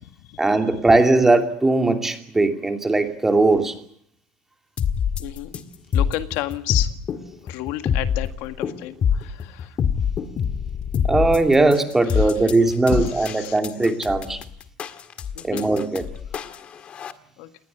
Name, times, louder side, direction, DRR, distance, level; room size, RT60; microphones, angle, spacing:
voice 1, 0.4-3.8 11.1-14.4 15.4-16.1, right 2 dB, 10° right, 6 dB, 2.7 m, -19 dB
sound 1, 4.8-17.1, left 7 dB, 30° left, 1.8 m, -25 dB
voice 2, 5.2-5.5 5.9-6.9 7.5-9.8 12.1-12.3 12.9-13.6 15.4-15.7 16.3-16.6 17.4-17.5, left 15 dB, 65° left, 9 dB, 1.9 m, -31 dB
29.0 x 20.5 x 8.3 m, 0.63 s
cardioid pair, 160°, 4 cm